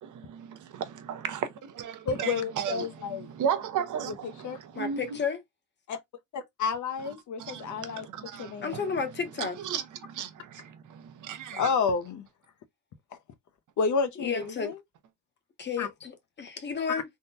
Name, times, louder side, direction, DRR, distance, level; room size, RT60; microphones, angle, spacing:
voice 1, 0.0-5.2 7.4-9.0 9.4-11.7, right 8 dB, 65° right, 0.6 m, -35 dB
voice 2, 2.1-3.3 4.2-4.6 5.9-6.0 6.3-8.1 8.4-8.8 11.5-12.3 13.8-14.8 15.8-15.9, left 5 dB, 60° left, 0.7 m, -30 dB
voice 3, 4.7-5.4 8.6-9.6 14.2-14.7 15.6-17.0, left 5 dB, 35° left, 0.8 m, -32 dB
3.6 x 2.1 x 2.6 m
cardioid pair, 130°, 33 cm